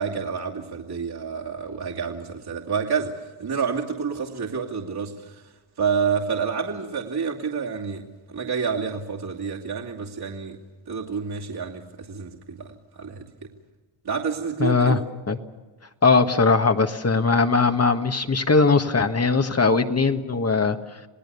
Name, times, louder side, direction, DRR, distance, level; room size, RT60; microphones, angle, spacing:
voice 1, 0.0-5.4 5.8-10.6 10.9-13.5 14.0-15.0, right 6 dB, 50° right, -1 dB, 2.7 m, -29 dB
voice 2, 14.6-15.0 15.3-15.4 16.0-20.8, left 4 dB, 30° left, 7 dB, 1.6 m, -20 dB
29.0 x 18.0 x 7.0 m, 1.3 s
cardioid pair, 70°, 50 cm